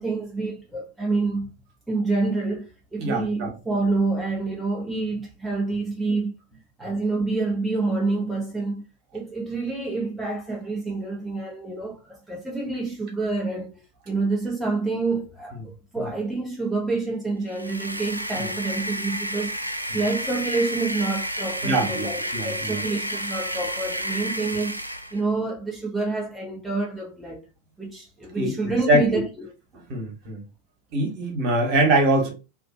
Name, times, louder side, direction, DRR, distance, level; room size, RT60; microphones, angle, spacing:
voice 1, 0.0-1.5 1.9-6.3 6.8-8.8 9.1-13.8 14.1-19.6 19.9-24.8 25.1-27.4 27.8-29.5, right 3 dB, 5° right, 0.6 m, -27 dB
voice 2, 3.0-3.5 16.0-16.1 18.3-18.4 21.6-22.8 28.3-29.0 29.9-30.4 30.9-32.3, right 1 dB, 45° right, 1.2 m, -23 dB
sound 1, 17.5-25.2, equal, 90° right, 0.3 m, -31 dB
2.6 x 2.5 x 2.6 m
figure-of-eight pair, 90°, 0 cm